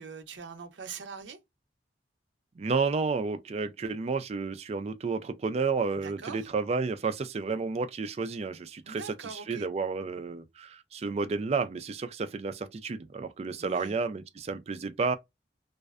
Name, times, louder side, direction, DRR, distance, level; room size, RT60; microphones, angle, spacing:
voice 1, 0.0-1.4 6.0-6.5 8.8-9.7 13.6-14.0, right 5 dB, 85° right, 0.6 m, -42 dB
voice 2, 2.6-15.2, right 4 dB, 35° right, 0.3 m, -31 dB
2.5 x 2.1 x 2.3 m
head